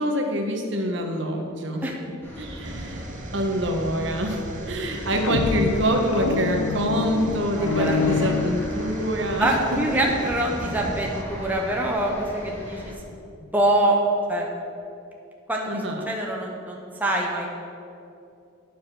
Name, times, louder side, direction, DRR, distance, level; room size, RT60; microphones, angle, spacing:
voice 1, 0.0-1.8 2.4-3.1 3.3-9.5 15.7-16.1, right 1 dB, 60° right, 3 dB, 1.3 m, -26 dB
sound 1, 2.2-12.9, equal, 10° left, 1.8 m, -39 dB
sound 2, 2.6-11.2, right 1 dB, 40° right, 0.7 m, -38 dB
sound 3, 5.0-9.2, left 5 dB, 85° left, 0.5 m, -27 dB
voice 2, 7.5-8.1 9.4-12.9 13.4-14.0 14.3-14.5 15.5-15.7 16.1-17.5, right 1 dB, 10° right, -1 dB, 0.9 m, -25 dB
9.6 x 7.3 x 6.2 m, 2.7 s
head